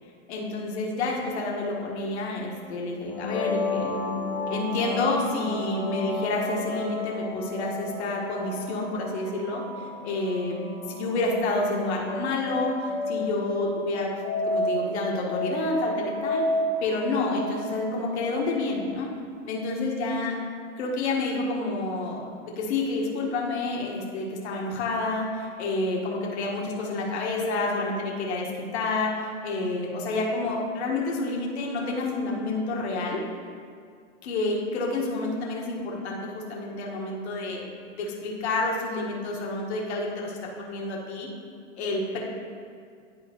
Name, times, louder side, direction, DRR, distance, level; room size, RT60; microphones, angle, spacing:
voice 1, 0.3-3.9 4.5-10.6 10.9-14.1 14.4-19.1 19.4-20.4 20.8-33.2 34.2-37.6 37.9-40.4 40.7-41.3 41.8-42.2, left 2 dB, 55° left, -2 dB, 1.4 m, -29 dB
sound 1, 3.1-18.7, left 1 dB, 15° left, 1.1 m, -32 dB
11.0 x 3.8 x 3.0 m, 2.2 s
hypercardioid pair, 135°, 39 cm